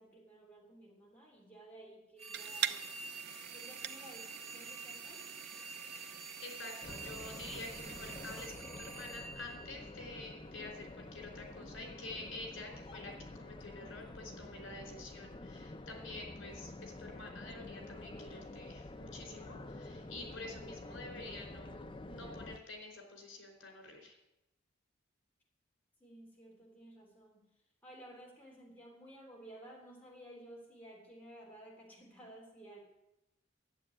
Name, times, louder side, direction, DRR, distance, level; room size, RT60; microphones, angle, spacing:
voice 1, 0.0-2.9 3.5-5.3 20.5-20.8 26.0-27.5 27.8-32.8, right 1 dB, 10° left, -3 dB, 3.5 m, -55 dB
sound 1, 2.2-10.4, right 4 dB, 35° right, 1.4 m, -48 dB
sound 2, 2.3-8.5, right 9 dB, 55° right, 0.6 m, -44 dB
voice 2, 5.9-24.2, left 2 dB, 75° left, 3 dB, 4.1 m, -48 dB
sound 3, 6.8-22.6, left 2 dB, 25° left, 0.5 m, -49 dB
12.0 x 7.7 x 9.9 m, 0.92 s
head